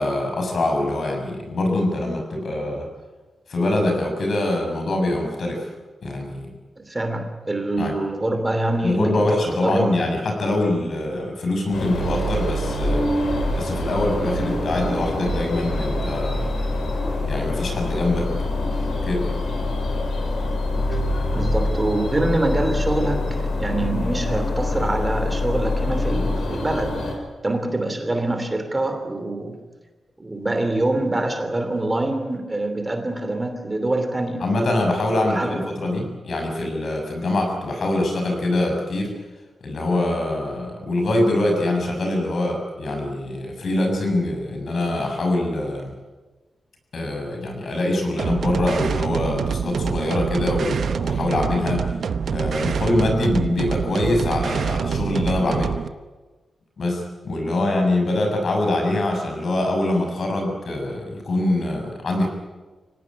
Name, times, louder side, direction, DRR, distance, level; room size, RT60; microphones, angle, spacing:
voice 1, 0.0-2.9 3.5-5.7 6.0-6.5 7.8-7.9 8.8-13.1 13.5-16.5 17.2-18.3 19.0-19.3 34.4-39.2 39.6-45.9 46.9-51.9 52.3-55.7 56.8-62.3, left 1 dB, 60° left, 2 dB, 6.9 m, -24 dB
voice 2, 6.8-9.2 9.6-10.0 20.9-21.0 21.3-29.6 30.2-34.4 35.2-35.9, right 2 dB, 20° right, 7 dB, 3.0 m, -25 dB
sound 1, 11.7-27.1, left 2 dB, 75° left, 6.5 m, -25 dB
sound 2, 48.2-55.9, right 7 dB, 70° right, 1.0 m, -26 dB
25.5 x 18.0 x 9.8 m, 1.3 s
wide cardioid pair, 120°, 0 cm